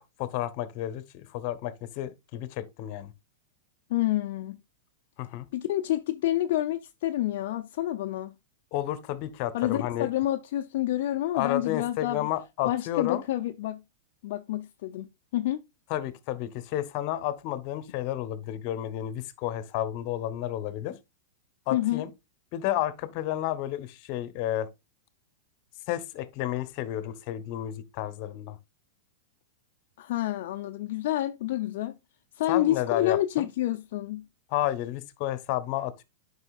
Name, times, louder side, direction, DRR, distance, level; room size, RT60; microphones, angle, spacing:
voice 1, 0.0-3.1 5.2-5.5 8.7-10.1 11.3-13.2 15.9-21.0 21.7-22.1 22.5-24.7 25.9-28.6 32.5-33.5 34.5-36.0, left 13 dB, 50° left, 1.1 m, -31 dB
voice 2, 3.9-4.6 5.5-8.3 9.5-12.3 12.6-13.8 14.2-15.1 15.3-15.6 21.7-22.0 30.0-31.9 32.4-34.2, left 14 dB, 65° left, 0.6 m, -28 dB
9.6 x 5.6 x 2.4 m
hypercardioid pair, 130°, 0 cm